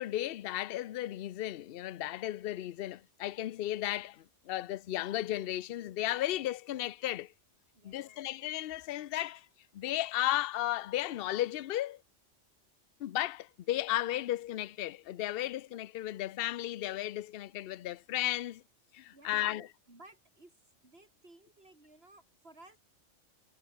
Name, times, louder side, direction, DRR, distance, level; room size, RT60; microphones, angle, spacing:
voice 1, 0.0-7.3 7.8-9.5 9.7-12.0 13.0-18.6 18.9-19.6, left 14 dB, 60° left, 0.7 m, -34 dB
voice 2, 7.7-8.3 19.1-20.5 20.8-22.8, right 2 dB, 55° right, 4.7 m, -57 dB
omnidirectional pair, 1.3 m